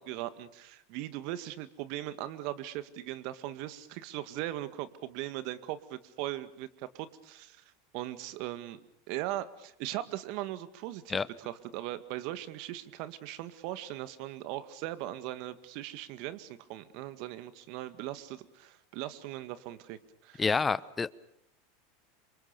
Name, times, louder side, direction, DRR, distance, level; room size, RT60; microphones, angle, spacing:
voice 1, 0.0-7.6 7.9-20.5, right 14 dB, 60° right, 2.0 m, -39 dB
voice 2, 20.4-21.1, left 5 dB, 20° left, 1.0 m, -28 dB
27.5 x 24.0 x 6.9 m
hypercardioid pair, 105°, 0 cm